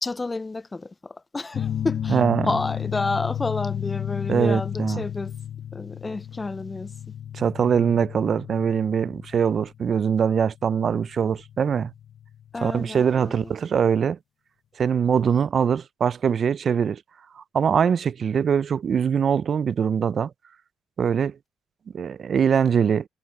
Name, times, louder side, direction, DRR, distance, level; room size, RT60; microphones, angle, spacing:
voice 1, 0.0-2.2 2.5-5.3 5.7-6.9 12.5-13.5, left 3 dB, 20° left, 0.3 m, -30 dB
sound 1, 1.5-12.7, left 9 dB, 50° left, 0.8 m, -33 dB
voice 2, 2.1-2.5 4.3-5.0 7.3-11.9 12.6-14.2 14.8-17.0 17.4-20.3 21.0-21.4 21.9-23.0, right 7 dB, 45° right, 0.4 m, -22 dB
cardioid pair, 100°, 0 cm